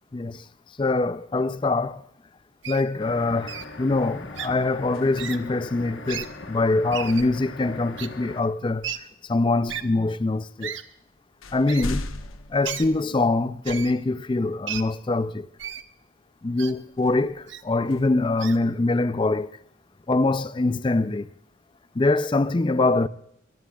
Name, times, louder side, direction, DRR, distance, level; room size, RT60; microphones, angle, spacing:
voice 1, 0.1-0.4 0.8-2.0 2.7-8.9 9.3-10.8 11.5-12.0 12.5-15.5 16.4-19.5 20.1-21.3 22.0-23.1, left 2 dB, 25° left, 0.4 m, -24 dB
Wild animals, 2.6-2.8 3.5-3.7 4.3-4.5 5.2-5.4 6.0-6.3 6.9-7.3 8.0-8.1 8.8-9.0 9.7-9.8 10.6-10.8 11.7-11.9 12.6-12.9 13.6-13.9 14.7-14.8 15.6-15.8 16.6-16.7 17.5-17.6 18.4-18.6, right 9 dB, 65° right, 0.9 m, -33 dB
sound 1, 3.0-8.4, left 2 dB, 60° left, 1.2 m, -41 dB
sound 2, 3.8-5.5 7.7-7.9 8.7-9.4 10.3-10.4 10.8-13.7 14.2-14.3 16.9-19.1, left 2 dB, 90° left, 1.0 m, -39 dB
23.0 x 14.5 x 2.4 m
head